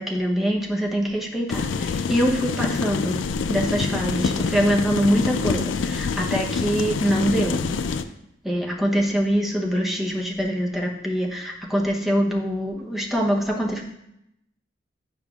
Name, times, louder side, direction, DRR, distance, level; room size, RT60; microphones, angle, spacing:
voice 1, 0.0-3.2 3.5-7.6 8.4-13.8, equal, ahead, -2 dB, 0.7 m, -24 dB
sound 1, 1.5-8.0, left 5 dB, 85° left, 0.4 m, -26 dB
8.6 x 5.1 x 2.4 m, 0.81 s
head